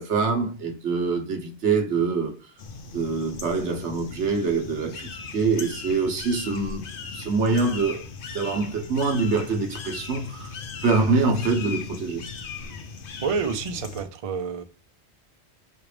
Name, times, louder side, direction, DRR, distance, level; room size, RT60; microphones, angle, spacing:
voice 1, 0.0-2.3 2.9-8.0 8.3-10.5 10.8-12.2, right 4 dB, 80° right, 1.2 m, -25 dB
sound 1, 2.6-14.0, left 5 dB, 55° left, 0.8 m, -38 dB
voice 2, 13.2-14.6, right 5 dB, 50° right, 0.4 m, -28 dB
4.8 x 3.1 x 3.2 m
omnidirectional pair, 1.2 m